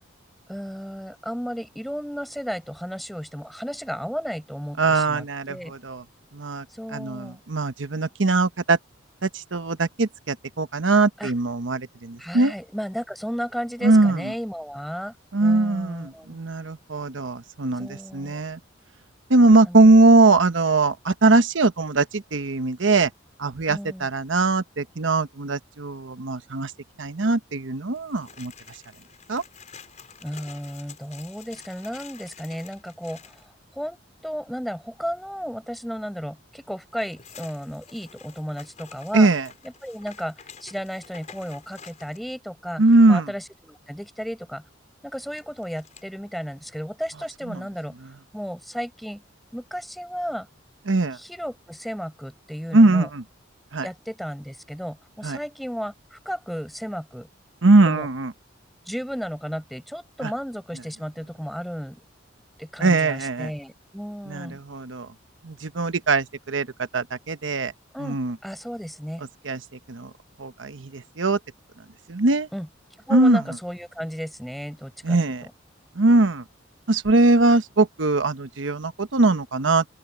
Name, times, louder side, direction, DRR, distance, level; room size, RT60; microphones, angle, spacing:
voice 1, 0.5-5.7 6.7-7.4 11.2-11.3 12.2-16.4 17.8-18.4 19.6-19.8 23.7-24.1 30.2-39.3 39.6-44.6 45.0-48.0 48.3-49.2 49.5-50.5 51.1-53.1 53.8-57.3 57.9-58.1 58.9-62.0 62.6-64.6 67.9-68.2 68.4-69.2 72.5-72.7 73.1-75.5, equal, ahead, 5.3 m, -34 dB
voice 2, 4.8-6.0 6.3-6.6 6.9-8.8 9.2-12.5 13.8-14.3 15.3-18.6 19.3-23.1 23.4-26.7 27.0-28.5 29.3-29.4 39.1-39.5 42.8-43.3 47.5-47.6 50.9-51.2 52.7-53.2 53.7-53.9 55.2-55.4 57.6-58.3 60.2-60.3 62.8-63.5 64.3-65.1 65.4-66.7 66.9-67.7 68.0-68.3 69.4-69.6 69.9-70.1 70.4-71.4 72.1-72.5 73.1-73.4 75.0-75.5 75.9-76.4 76.9-79.8, right 2 dB, 75° right, 1.0 m, -20 dB
sound 1, 27.9-33.5 36.7-42.2 45.3-46.0, left 7 dB, 40° left, 5.1 m, -48 dB
open air
head